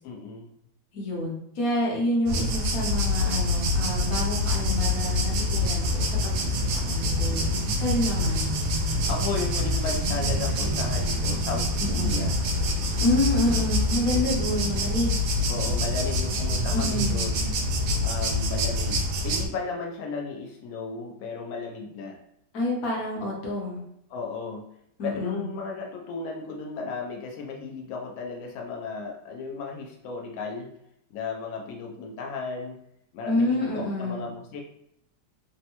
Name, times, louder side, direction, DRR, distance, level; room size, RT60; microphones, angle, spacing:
voice 1, 0.0-0.5 7.2-7.8 9.1-12.4 14.1-14.5 15.5-17.5 18.0-22.2 24.1-24.6 25.0-30.7 31.1-32.8 33.1-34.6, left 4 dB, 90° left, 0 dB, 0.7 m, -35 dB
voice 2, 0.9-7.5 7.8-8.5 11.8-12.3 13.0-15.2 16.7-17.2 22.5-23.8 25.0-25.5 33.2-34.2, left 1 dB, 55° left, -3 dB, 1.1 m, -28 dB
sound 1, 2.3-19.5, left 1 dB, 85° right, 1.3 m, -26 dB
3.5 x 2.1 x 2.8 m, 0.75 s
omnidirectional pair, 2.0 m